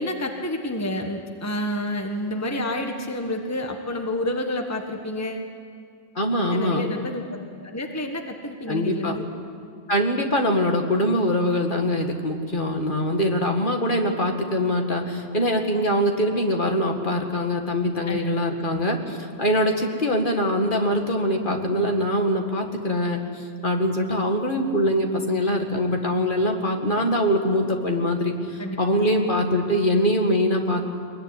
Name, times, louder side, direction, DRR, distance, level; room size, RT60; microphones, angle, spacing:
voice 1, 0.0-5.5 6.5-9.2 18.1-18.2 18.7-18.8 28.6-28.8, left 1 dB, 15° left, 3 dB, 1.4 m, -29 dB
voice 2, 6.2-6.8 8.7-9.2 9.9-30.8, equal, 45° left, 3 dB, 2.3 m, -23 dB
22.5 x 22.0 x 9.8 m, 2.2 s
omnidirectional pair, 1.2 m